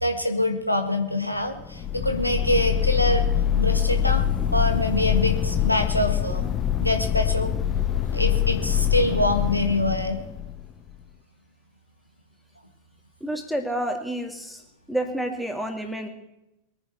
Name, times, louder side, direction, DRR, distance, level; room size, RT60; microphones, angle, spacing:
voice 1, 0.0-3.2 3.6-4.2 4.5-6.5 6.8-7.5 8.0-10.2, left 1 dB, 90° left, 5 dB, 1.6 m, -25 dB
sound 1, 1.6-10.9, left 10 dB, 25° left, 0.9 m, -24 dB
voice 2, 13.2-14.6 14.9-16.1, right 1 dB, ahead, 3 dB, 2.3 m, -29 dB
22.5 x 9.7 x 4.5 m, 0.88 s
figure-of-eight pair, 90°, 0 cm